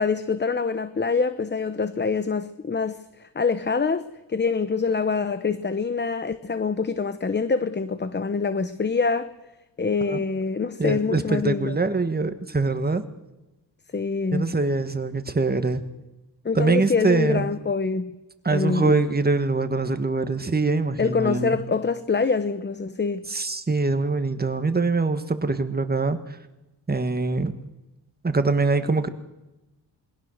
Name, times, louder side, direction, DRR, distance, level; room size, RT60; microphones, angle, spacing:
voice 1, 0.0-9.3 9.8-11.8 13.9-14.5 16.4-18.1 18.5-19.0 21.0-23.2, left 4 dB, 25° left, 0.9 m, -25 dB
voice 2, 10.6-13.0 14.3-15.8 16.5-17.5 18.4-21.6 23.3-26.4 26.9-27.5 28.2-29.1, right 3 dB, 20° right, 1.7 m, -23 dB
27.0 x 21.0 x 6.5 m
cardioid pair, 100°, 43 cm